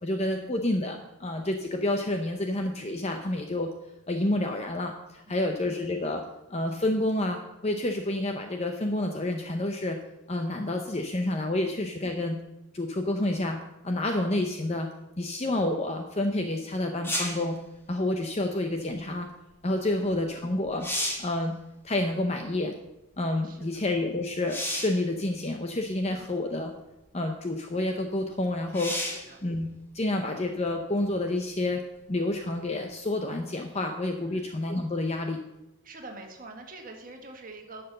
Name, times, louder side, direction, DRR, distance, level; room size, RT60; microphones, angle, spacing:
voice 1, 0.0-3.7 4.1-6.2 6.5-10.0 10.3-12.4 12.7-13.6 13.8-14.9 15.2-17.6 17.9-19.3 19.6-20.9 21.2-21.6 21.8-22.7 23.2-26.7 27.1-28.9 29.4-31.8 32.1-35.4, left 1 dB, 30° left, 4 dB, 0.7 m, -29 dB
sound 1, 17.0-17.5 20.1-20.2 20.6-21.4 24.5-25.0 26.0-26.1 28.7-29.3 32.9-33.0, left 1 dB, 10° left, 1.5 m, -31 dB
voice 2, 23.4-23.8 26.1-26.3 29.1-29.4 34.2-34.4 35.8-37.9, right 2 dB, 40° right, 3 dB, 1.6 m, -45 dB
11.0 x 6.9 x 6.6 m, 0.93 s
head